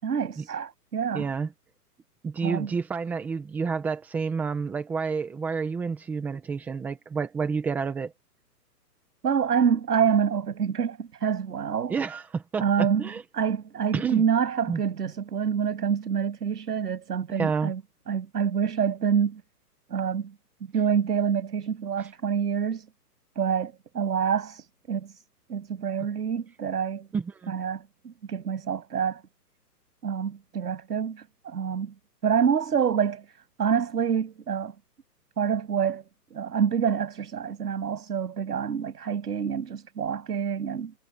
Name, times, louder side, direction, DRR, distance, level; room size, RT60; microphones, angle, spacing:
voice 1, 0.0-1.3 2.4-2.7 9.2-11.9 12.6-13.0 13.3-17.8 18.1-19.4 19.9-20.3 20.7-22.9 23.4-25.2 25.5-27.1 27.5-29.2 30.0-31.9 32.2-33.3 33.6-34.7 35.4-40.9, right 7 dB, 70° right, 7.1 m, -27 dB
voice 2, 1.1-1.5 2.2-8.1 11.9-13.2 13.9-14.2 14.7-14.8 17.4-17.7 22.0-22.1 27.1-27.5, right 5 dB, 5° right, 0.9 m, -29 dB
hypercardioid pair, 165°, 49 cm